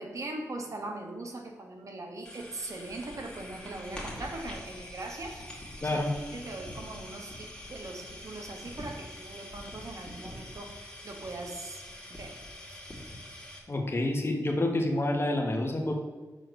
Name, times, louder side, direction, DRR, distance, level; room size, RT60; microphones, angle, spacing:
voice 1, 0.0-6.0 6.3-12.4 12.7-12.8, right 2 dB, 55° right, 2 dB, 1.4 m, -41 dB
sound 1, 2.2-13.6, left 1 dB, 15° left, 2.3 m, -44 dB
voice 2, 13.7-15.9, left 1 dB, 40° left, 2 dB, 1.4 m, -28 dB
6.4 x 4.5 x 6.4 m, 1.4 s
cardioid pair, 70°, 6 cm